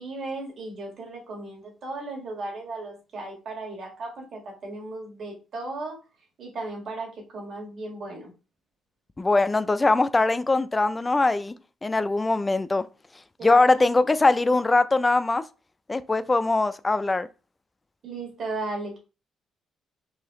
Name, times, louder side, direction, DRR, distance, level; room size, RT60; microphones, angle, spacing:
voice 1, 0.0-6.0 6.4-8.3 13.4-13.7 18.0-19.0, right 2 dB, 55° right, 1.8 m, -36 dB
voice 2, 9.2-11.5 11.8-12.9 13.4-15.4 15.9-17.3, left 3 dB, 15° left, 0.3 m, -21 dB
4.8 x 2.7 x 3.0 m
cardioid pair, 140°, 0 cm